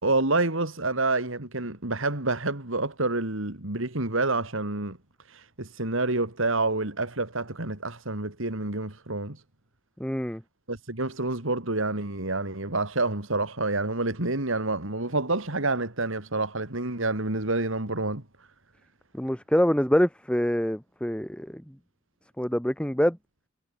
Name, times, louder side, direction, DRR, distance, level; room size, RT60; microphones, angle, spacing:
voice 1, 0.0-5.0 5.3-9.4 10.7-18.2, right 2 dB, 70° right, 3.4 m, -28 dB
voice 2, 10.0-10.4 19.1-21.6 22.4-23.2, equal, 5° left, 2.2 m, -25 dB
head